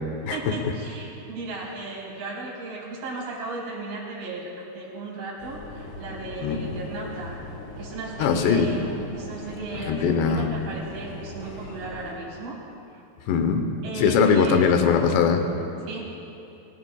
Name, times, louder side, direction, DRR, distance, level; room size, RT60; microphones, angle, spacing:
voice 1, 0.2-4.5 4.7-7.4 7.8-12.6 13.8-14.6 15.8-16.0, right 3 dB, 65° right, -6 dB, 6.1 m, -35 dB
sound 1, 5.4-12.1, left 1 dB, 90° left, 5.8 m, -40 dB
voice 2, 8.2-8.7 9.9-10.5 13.3-13.7 14.0-15.4, left 6 dB, 75° left, 6 dB, 3.1 m, -21 dB
24.5 x 18.5 x 2.4 m, 2.9 s
omnidirectional pair, 5.3 m